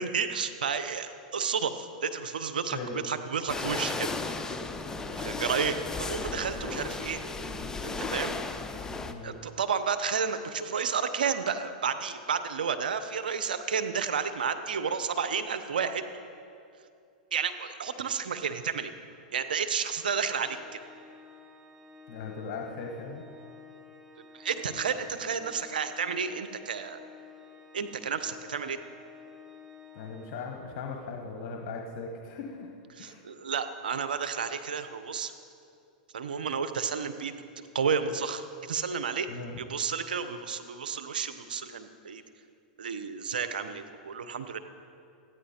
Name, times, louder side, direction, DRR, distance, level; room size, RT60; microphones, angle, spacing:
voice 1, 0.0-2.8 3.0-4.6 5.2-7.3 7.8-8.3 9.2-16.3 17.3-18.9 19.3-20.6 24.3-27.0 27.7-28.8 33.0-35.3 36.1-37.3 37.7-39.3 39.6-42.2 42.8-44.6, right 6 dB, 85° right, 9 dB, 0.7 m, -31 dB
voice 2, 2.7-3.0 9.1-9.4 22.1-23.2 29.9-32.7 33.0-33.2 39.3-39.6, left 4 dB, 50° left, 1 dB, 1.3 m, -38 dB
sound 1, 3.5-9.1, left 3 dB, 10° left, 0.6 m, -34 dB
Organ, 20.4-31.2, left 5 dB, 15° right, 1.0 m, -51 dB
13.5 x 9.7 x 4.3 m, 2.5 s
hypercardioid pair, 110°, 5 cm